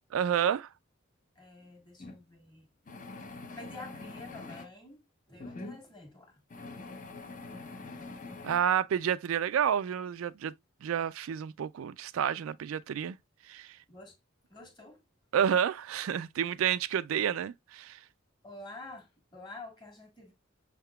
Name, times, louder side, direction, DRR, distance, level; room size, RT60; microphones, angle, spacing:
voice 1, 0.1-0.7 8.4-10.5 10.8-13.2 13.4-13.8 15.3-18.0, right 8 dB, 80° right, 0.3 m, -29 dB
voice 2, 1.3-2.7 3.3-6.4 13.9-14.2 14.5-15.0 18.4-20.3, left 2 dB, 20° left, 1.5 m, -49 dB
sound 1, 2.0-2.2 2.9-4.7 5.4-5.8 6.5-8.6, left 3 dB, 40° left, 0.7 m, -44 dB
6.4 x 3.5 x 2.2 m
head